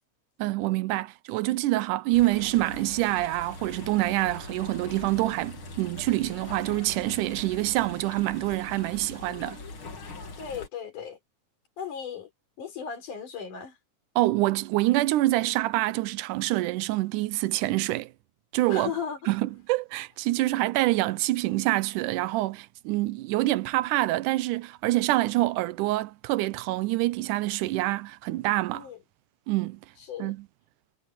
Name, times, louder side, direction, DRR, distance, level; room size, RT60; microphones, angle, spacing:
voice 1, 0.4-9.6 14.2-18.1 18.5-18.9 19.3-28.9 29.5-29.8 30.2-30.5, right 18 dB, 85° right, 2.2 m, -26 dB
sound 1, 2.1-10.7, left 3 dB, 45° left, 3.3 m, -42 dB
voice 2, 10.4-11.2 11.8-12.3 12.6-13.8 18.7-19.3 28.8-29.0 30.1-30.3, left 7 dB, 85° left, 5.4 m, -36 dB
omnidirectional pair, 3.5 m